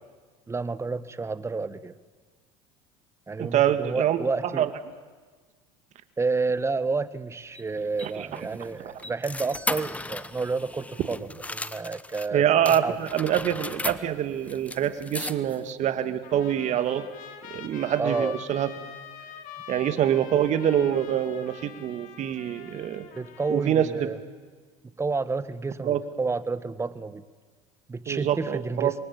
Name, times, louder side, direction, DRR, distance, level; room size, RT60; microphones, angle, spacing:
voice 1, 0.5-1.9 3.3-4.7 6.2-12.4 12.8-13.0 18.0-18.4 23.1-24.2 25.0-27.2 27.9-28.9, right 4 dB, 15° right, 14 dB, 1.4 m, -30 dB
voice 2, 3.4-4.7 8.0-8.4 8.8-9.0 12.3-17.1 17.5-18.7 19.7-23.0 23.5-24.1 25.8-26.0 28.1-28.9, right 10 dB, 50° right, 10 dB, 2.3 m, -25 dB
sound 1, 7.5-12.3 12.7-15.7, left 2 dB, 10° left, 1.0 m, -36 dB
Trumpet, 16.2-23.9, left 9 dB, 60° left, 3.4 m, -45 dB
27.5 x 23.0 x 8.8 m, 1.5 s
supercardioid pair, 95°, 16 cm